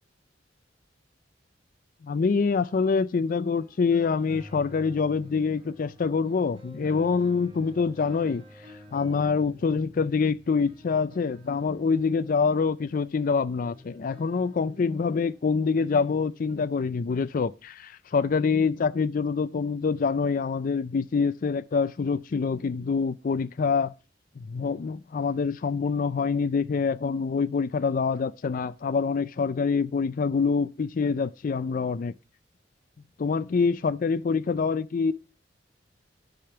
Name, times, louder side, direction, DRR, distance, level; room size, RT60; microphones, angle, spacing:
voice 1, 2.0-8.4 8.9-23.9 24.4-32.1 33.2-35.1, left 5 dB, 50° left, 0.4 m, -26 dB
sound 1, 3.5-16.5, equal, 35° right, 2.8 m, -51 dB
12.0 x 5.2 x 5.6 m
head